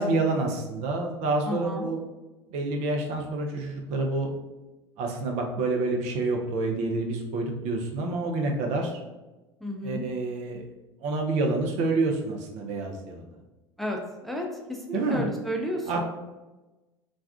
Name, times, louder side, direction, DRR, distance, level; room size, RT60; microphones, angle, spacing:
voice 1, 0.0-2.0 2.5-4.3 5.0-9.0 9.8-10.6 11.0-13.3 14.9-15.3 15.9-16.0, right 2 dB, 55° right, 2 dB, 0.6 m, -28 dB
voice 2, 1.5-1.9 9.6-10.0 13.8-14.5 14.9-16.0, equal, ahead, 0 dB, 0.5 m, -32 dB
2.4 x 2.3 x 3.5 m, 1.1 s
hypercardioid pair, 75°, 14 cm